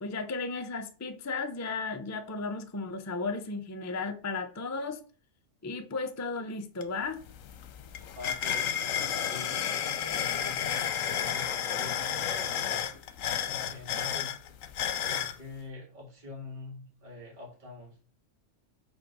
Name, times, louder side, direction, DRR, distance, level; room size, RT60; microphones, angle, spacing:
voice 1, 0.0-5.0 5.6-7.2, left 3 dB, 20° left, 0.5 m, -34 dB
sound 1, 6.8-6.9 7.2-15.4, left 9 dB, 80° left, 1.1 m, -32 dB
voice 2, 8.2-12.9 13.4-14.6 15.0-18.0, left 3 dB, 35° right, 2.1 m, -45 dB
5.2 x 4.0 x 6.0 m
omnidirectional pair, 1.4 m